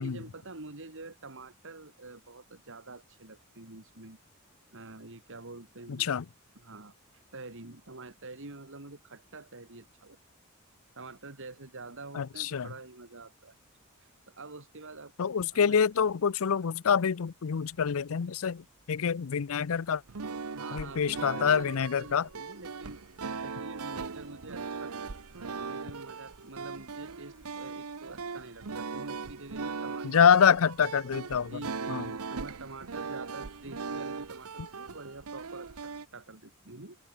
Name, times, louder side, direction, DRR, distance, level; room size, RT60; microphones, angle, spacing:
voice 1, 0.0-4.2 4.7-6.1 6.5-10.2 10.9-13.6 14.0-15.8 20.5-23.0 23.4-30.2 31.4-37.0, right 2 dB, 65° right, 3.2 m, -47 dB
voice 2, 5.9-6.2 12.1-12.7 15.2-20.0 20.7-22.3 30.0-31.6 31.9-32.1, left 7 dB, 70° left, 0.5 m, -26 dB
sound 1, 20.0-36.1, right 4 dB, 80° right, 0.9 m, -39 dB
open air
head